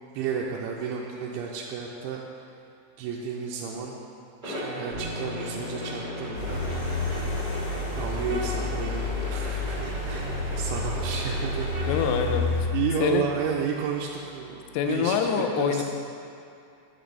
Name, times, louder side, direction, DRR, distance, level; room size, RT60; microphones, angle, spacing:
voice 1, 0.1-2.2 3.0-3.9 4.4-6.7 7.7-12.2 12.7-15.8, right 7 dB, 85° right, -2 dB, 2.9 m, -32 dB
sound 1, 4.4-12.2, equal, 35° right, 0.7 m, -37 dB
Bass guitar, 4.9-14.8, left 1 dB, 65° right, 2.3 m, -43 dB
voice 2, 5.6-5.9 11.9-12.5 13.0-13.3 14.7-15.8, left 7 dB, 80° left, 5 dB, 2.6 m, -26 dB
sound 2, 6.3-12.7, left 2 dB, 60° left, 2.4 m, -30 dB
9.2 x 8.1 x 4.0 m, 2.5 s
omnidirectional pair, 5.3 m